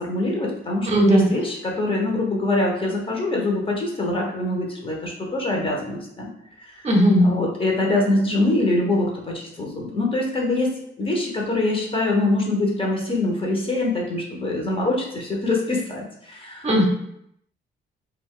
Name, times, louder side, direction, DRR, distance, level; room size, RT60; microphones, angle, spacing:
voice 1, 0.0-6.3 6.8-6.9 7.2-16.7, left 2 dB, 25° left, -1 dB, 0.7 m, -24 dB
voice 2, 0.8-1.3 6.8-7.3 16.6-16.9, equal, 35° right, 0 dB, 0.7 m, -17 dB
2.3 x 2.2 x 3.6 m, 0.73 s
cardioid pair, 90°, 20 cm